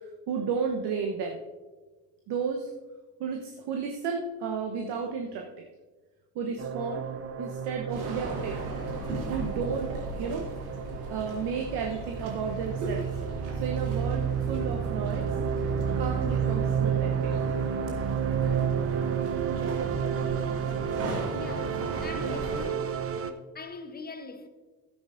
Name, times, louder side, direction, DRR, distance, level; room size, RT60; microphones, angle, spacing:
voice 1, 0.3-1.4 2.3-2.7 3.2-5.5 6.3-7.1 7.4-8.6 9.3-10.5 11.1-13.1 13.6-15.3 15.9-17.3, right 5 dB, 55° right, 1.1 m, -32 dB
sound 1, 6.6-23.3, right 7 dB, 30° right, 0.7 m, -31 dB
sound 2, 7.9-22.7, right 1 dB, 75° right, 2.4 m, -38 dB
voice 2, 21.3-23.0 23.5-24.5, left 3 dB, 20° left, 1.0 m, -42 dB
13.0 x 10.0 x 2.6 m
hypercardioid pair, 60°, 50 cm